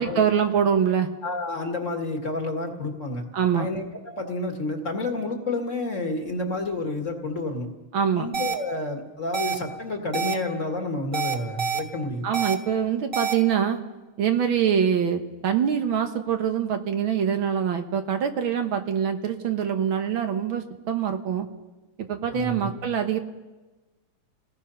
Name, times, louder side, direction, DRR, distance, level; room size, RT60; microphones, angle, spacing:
voice 1, 0.0-1.1 3.3-3.7 7.9-8.3 12.2-13.8 14.2-21.5 22.0-23.2, right 8 dB, 70° right, 6 dB, 2.0 m, -24 dB
voice 2, 1.2-3.2 3.5-7.7 8.1-12.3 22.3-22.7, left 2 dB, 35° left, 3 dB, 2.0 m, -30 dB
sound 1, 8.3-8.5 9.3-9.5 10.1-10.3 11.1-11.8 12.3-12.5 13.1-13.3, right 6 dB, 30° right, 1.6 m, -26 dB
29.5 x 18.5 x 5.6 m, 1.2 s
omnidirectional pair, 2.3 m